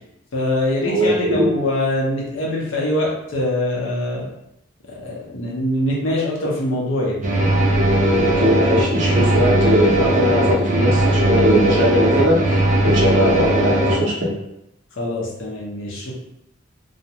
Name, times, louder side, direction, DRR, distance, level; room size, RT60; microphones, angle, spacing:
voice 1, 0.3-4.3 4.9-7.2 15.0-16.2, left 1 dB, 75° left, -3 dB, 0.7 m, -23 dB
voice 2, 0.9-1.5 8.1-14.3, equal, 65° right, -4 dB, 0.7 m, -20 dB
sound 1, 7.2-13.9, right 1 dB, 35° right, 0.3 m, -18 dB
2.4 x 2.1 x 2.8 m, 0.85 s
head